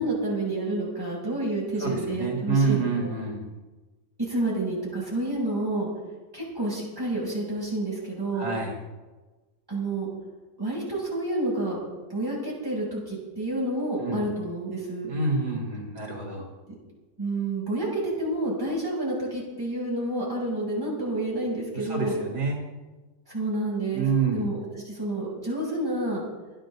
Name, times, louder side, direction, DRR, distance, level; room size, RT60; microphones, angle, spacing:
voice 1, 0.0-3.1 4.2-5.9 6.3-8.5 9.7-10.1 10.6-11.8 12.1-15.1 17.2-22.2 23.3-24.1 24.3-26.2, right 1 dB, 10° right, -5 dB, 6.8 m, -29 dB
voice 2, 1.8-3.4 8.3-8.8 14.0-14.2 15.1-16.5 21.7-22.6 23.9-24.5, right 4 dB, 65° right, -2 dB, 3.8 m, -27 dB
28.5 x 10.5 x 3.9 m, 1.2 s
omnidirectional pair, 1.9 m